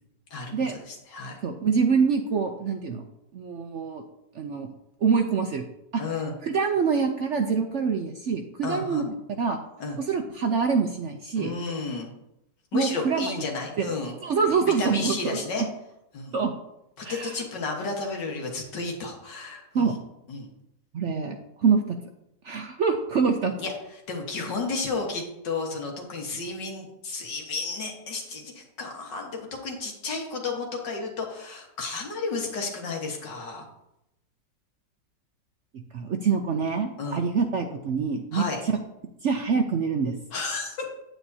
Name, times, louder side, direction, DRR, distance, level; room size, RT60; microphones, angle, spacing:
voice 1, 0.3-1.4 6.0-6.3 8.6-9.1 9.8-10.0 11.4-12.1 12.7-14.2 14.8-15.7 16.1-16.4 17.0-20.0 20.3-20.5 23.6-33.7 37.0-37.2 38.3-38.6 40.3-40.9, left 3 dB, 85° left, 1 dB, 2.1 m, -32 dB
voice 2, 1.4-3.0 3.3-4.0 4.4-4.7 5.0-5.6 5.9-6.0 6.4-9.6 10.1-11.5 12.7-13.3 13.8-13.9 14.2-15.6 16.3-16.5 17.0-17.3 19.7-19.9 20.9-21.4 21.6-22.0 22.4-23.5 35.9-38.4 39.2-40.1, right 5 dB, 65° right, 5 dB, 0.7 m, -25 dB
9.1 x 9.1 x 2.7 m, 0.85 s
omnidirectional pair, 1.8 m